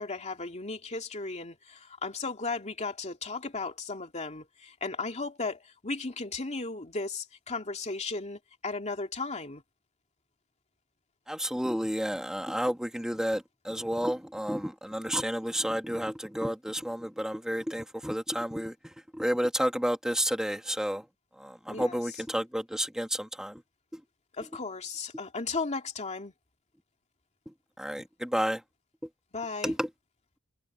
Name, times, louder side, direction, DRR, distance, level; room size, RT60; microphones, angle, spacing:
voice 1, 0.0-9.6 21.7-22.0 24.4-26.3 29.3-29.7, left 3 dB, 30° left, 2.6 m, -35 dB
voice 2, 11.3-18.7 19.1-21.0 21.4-23.6 23.9-24.0 27.8-28.6 29.6-29.9, equal, 5° right, 2.1 m, -31 dB
head